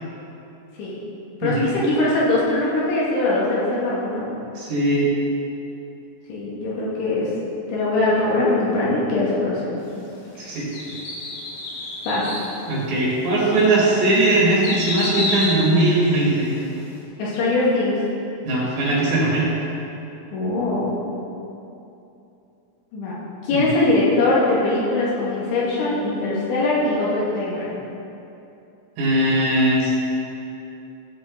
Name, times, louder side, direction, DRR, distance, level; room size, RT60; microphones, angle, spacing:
voice 1, 1.4-4.3 6.3-7.3 7.7-9.8 10.4-10.5 12.1-12.3 17.2-18.0 20.3-20.9 22.9-23.1 23.4-27.7, left 2 dB, 70° left, -7 dB, 4.3 m, -21 dB
voice 2, 4.6-5.1 10.4-10.7 12.7-16.5 18.5-19.5 23.5-23.6 29.0-29.9, right 2 dB, 65° right, -5 dB, 4.2 m, -19 dB
sound 1, 10.7-12.5 13.1-13.2 13.8-16.6 16.9-17.0, left 1 dB, 90° left, 4.3 m, -29 dB
16.0 x 7.2 x 4.0 m, 2.8 s
omnidirectional pair, 5.9 m